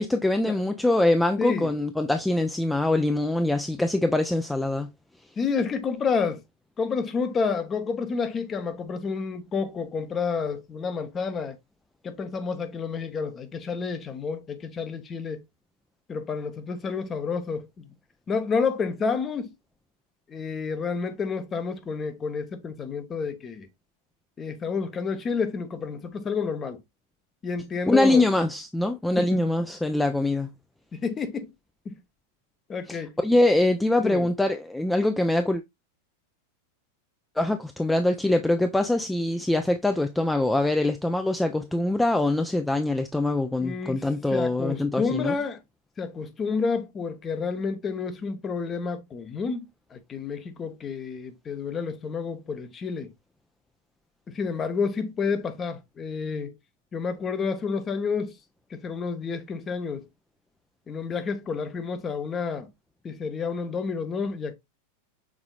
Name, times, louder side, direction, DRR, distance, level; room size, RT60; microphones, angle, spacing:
voice 1, 0.0-4.9 27.9-30.5 32.9-35.6 37.4-45.3, left 2 dB, 5° left, 0.4 m, -23 dB
voice 2, 1.4-1.7 5.4-6.4 6.8-11.6 12.0-15.4 16.1-17.9 18.3-19.6 20.3-23.7 24.4-26.8 27.4-28.3 29.2-29.4 30.9-31.5 31.8-32.0 32.7-33.1 34.0-34.3 43.6-45.6 46.0-53.1 54.3-56.5 56.9-58.4 58.7-60.1 60.9-62.7 63.0-64.5, left 5 dB, 20° left, 0.8 m, -30 dB
6.0 x 3.8 x 2.3 m
figure-of-eight pair, 90°, 0 cm